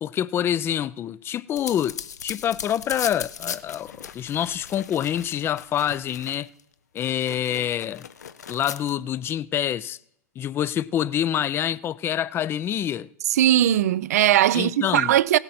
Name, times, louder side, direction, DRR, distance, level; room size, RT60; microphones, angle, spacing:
voice 1, 0.0-6.5 6.9-8.1 8.5-10.0 10.4-13.1 14.5-15.1, left 10 dB, 25° left, 0.4 m, -26 dB
sound 1, 1.6-6.6 7.0-8.9, left 8 dB, 80° left, 0.6 m, -38 dB
voice 2, 13.3-15.4, right 12 dB, 70° right, 0.4 m, -19 dB
17.5 x 7.9 x 4.3 m
hypercardioid pair, 100°, 9 cm